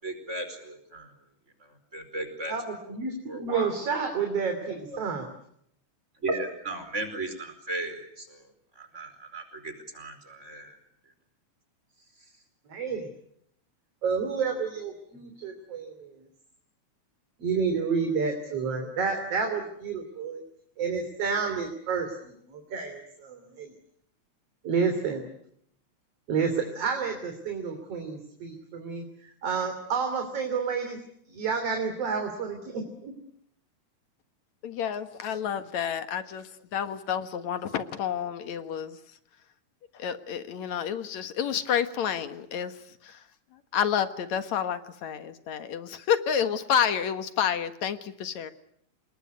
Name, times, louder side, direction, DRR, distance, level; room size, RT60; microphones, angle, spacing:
voice 1, 0.0-1.1 1.9-2.5 2.9-3.0 3.3-3.7 4.9-5.1 6.2-8.4 8.8-10.8, right 2 dB, 25° right, 8 dB, 4.8 m, -36 dB
voice 2, 2.5-5.3 12.7-13.1 14.0-16.1 17.4-20.4 20.8-23.7 24.6-25.2 26.3-31.0 31.3-33.1, right 5 dB, 55° right, 5 dB, 4.1 m, -30 dB
voice 3, 34.6-39.0 39.9-43.2 43.7-48.5, left 8 dB, 70° left, 9 dB, 2.8 m, -29 dB
27.5 x 21.5 x 9.5 m, 0.73 s
omnidirectional pair, 3.3 m